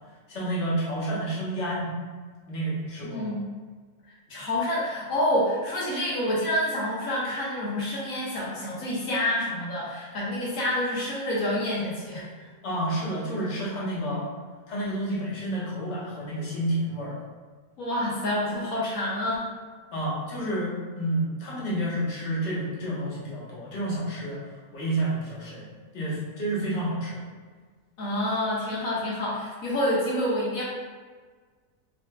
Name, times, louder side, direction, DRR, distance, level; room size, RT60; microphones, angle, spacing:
voice 1, 0.3-1.9 2.5-3.4 12.6-14.3 14.7-17.2 19.9-24.4 24.7-27.2, right 1 dB, 55° left, -6 dB, 1.2 m, -30 dB
voice 2, 3.0-3.5 4.3-12.3 17.8-19.5 28.0-30.6, left 1 dB, 80° left, -6 dB, 1.2 m, -28 dB
5.5 x 2.4 x 2.2 m, 1.5 s
omnidirectional pair, 1.4 m